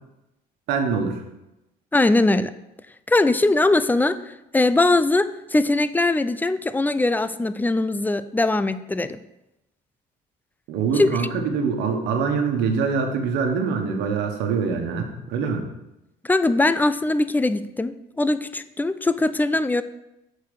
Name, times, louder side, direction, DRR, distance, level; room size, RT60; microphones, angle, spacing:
voice 1, 0.7-1.2 10.7-15.7, right 5 dB, 85° right, 4 dB, 1.3 m, -24 dB
voice 2, 1.9-2.5 3.1-4.2 4.5-9.2 11.0-11.1 16.2-19.8, left 2 dB, 10° left, 13 dB, 0.4 m, -21 dB
6.9 x 4.7 x 6.4 m, 0.91 s
cardioid pair, 110°, 17 cm